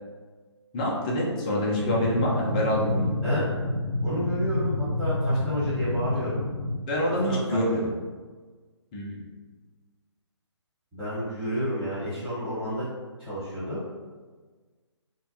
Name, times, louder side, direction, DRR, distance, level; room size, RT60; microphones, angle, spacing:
voice 1, 0.7-3.1 6.9-7.9 8.9-9.2, equal, 15° left, -4 dB, 0.3 m, -26 dB
sound 1, 1.7-6.7, left 1 dB, 80° right, 1.0 m, -28 dB
voice 2, 3.2-3.5 4.0-6.4 7.1-7.6 10.9-12.8 13.2-13.8, equal, 5° right, -14 dB, 1.1 m, -30 dB
2.5 x 2.1 x 2.6 m, 1.4 s
figure-of-eight pair, 140°, 15 cm